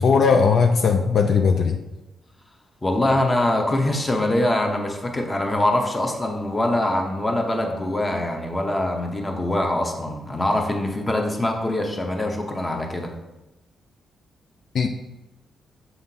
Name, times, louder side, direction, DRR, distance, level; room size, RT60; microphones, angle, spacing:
voice 1, 0.0-1.8 14.7-14.9, left 5 dB, 60° left, 5 dB, 0.4 m, -18 dB
voice 2, 2.8-13.1, left 1 dB, 15° left, 2 dB, 0.8 m, -23 dB
6.8 x 5.6 x 2.8 m, 1.0 s
cardioid pair, 135°, 0 cm